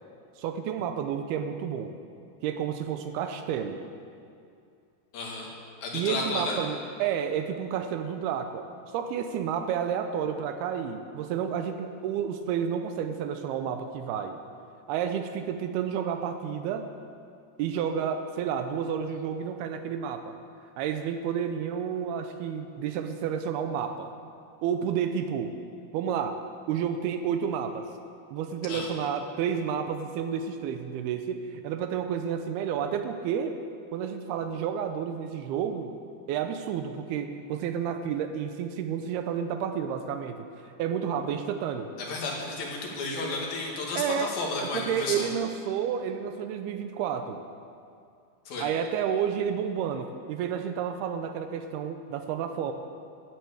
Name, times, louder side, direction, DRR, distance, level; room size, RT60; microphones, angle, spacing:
voice 1, 0.4-2.0 2.4-3.8 5.9-8.6 8.9-14.4 14.9-16.9 17.6-20.4 20.8-24.1 24.6-25.6 25.9-26.4 26.7-27.9 28.3-33.5 33.9-36.0 36.3-40.5 40.8-41.9 44.0-44.3 44.6-47.4 48.6-52.7, right 8 dB, 85° right, 7 dB, 2.4 m, -30 dB
voice 2, 5.1-5.5 5.8-6.6 28.6-28.9 42.0-45.3 48.5-48.7, left 3 dB, 60° left, -2 dB, 3.4 m, -32 dB
14.0 x 7.9 x 8.5 m, 2.4 s
omnidirectional pair, 5.1 m